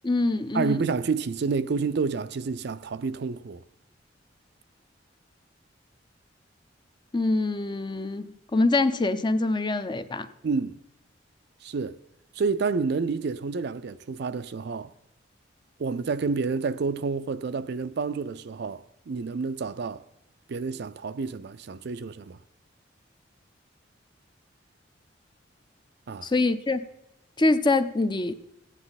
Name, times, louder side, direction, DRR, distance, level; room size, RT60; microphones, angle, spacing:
voice 1, 0.0-0.8 7.1-10.3 26.2-26.9 27.4-28.3, left 2 dB, 25° left, 0.6 m, -24 dB
voice 2, 0.5-3.6 10.4-10.8 11.6-12.0 12.4-14.9 15.8-20.0 20.5-22.4 26.1-26.3, right 4 dB, 60° right, 0.4 m, -29 dB
15.5 x 9.9 x 4.0 m
head